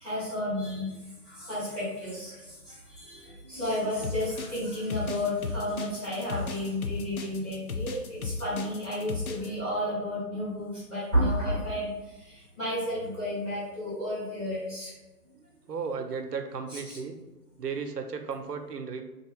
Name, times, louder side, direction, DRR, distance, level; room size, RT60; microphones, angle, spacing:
voice 1, 0.0-0.9 1.3-2.3 3.1-11.9 12.6-14.9 16.7-17.0, left 1 dB, 15° left, -12 dB, 1.1 m, -31 dB
sound 1, 4.0-9.5, left 4 dB, 60° left, 0.5 m, -35 dB
voice 2, 15.7-17.2 17.6-19.0, right 5 dB, 75° right, 6 dB, 0.7 m, -34 dB
3.5 x 2.8 x 3.1 m, 1.1 s
figure-of-eight pair, 150°, 49 cm